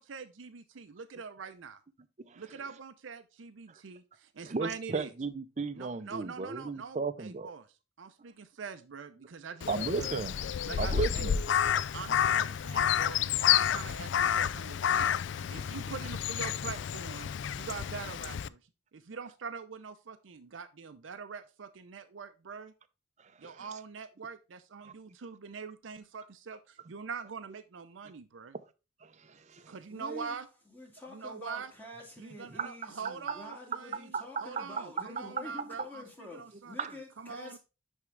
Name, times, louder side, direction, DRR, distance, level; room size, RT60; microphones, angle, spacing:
voice 1, 0.0-1.8 2.4-5.1 5.7-7.7 8.0-10.1 10.6-11.3 11.9-15.1 15.5-18.6 18.9-22.7 23.4-28.6 29.7-30.5 31.1-31.7 32.2-34.2 34.4-37.6, right 5 dB, 85° right, 0.6 m, -44 dB
voice 2, 4.5-7.5 9.7-10.4 10.8-11.4 23.4-23.6 24.8-24.9 29.0-29.7 32.6-32.7 34.1-34.7 36.8-36.9, right 4 dB, 40° right, 0.6 m, -35 dB
Crow, 9.6-18.5, left 9 dB, 65° left, 0.3 m, -30 dB
voice 3, 29.9-30.4 30.7-37.6, left 1 dB, 10° left, 1.8 m, -47 dB
10.5 x 3.6 x 3.2 m
head